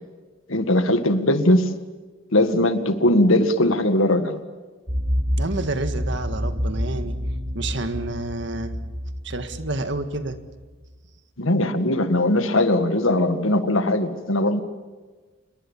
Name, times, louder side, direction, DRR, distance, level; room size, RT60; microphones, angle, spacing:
voice 1, 0.5-1.6 2.3-4.4 11.4-14.6, left 1 dB, 75° left, 9 dB, 1.9 m, -20 dB
sound 1, 4.9-10.6, equal, 30° right, 2.9 m, -28 dB
voice 2, 5.4-7.2 7.5-8.8 9.2-10.4, right 2 dB, 60° right, 9 dB, 1.8 m, -29 dB
28.0 x 22.0 x 7.4 m, 1.3 s
head